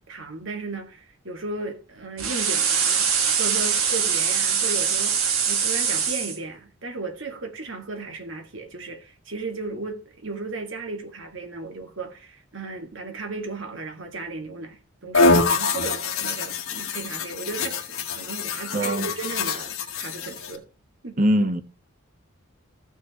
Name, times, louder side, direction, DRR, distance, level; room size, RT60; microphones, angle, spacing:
voice 1, 0.1-5.2 5.5-20.7 21.0-21.2, right 3 dB, 65° right, 2.1 m, -35 dB
sound 1, 2.2-6.4, right 7 dB, 85° right, 2.0 m, -23 dB
sound 2, 15.1-20.6, left 3 dB, 80° left, 1.8 m, -25 dB
voice 2, 18.7-19.1 21.2-21.6, equal, 40° right, 1.0 m, -21 dB
15.0 x 6.5 x 3.1 m
head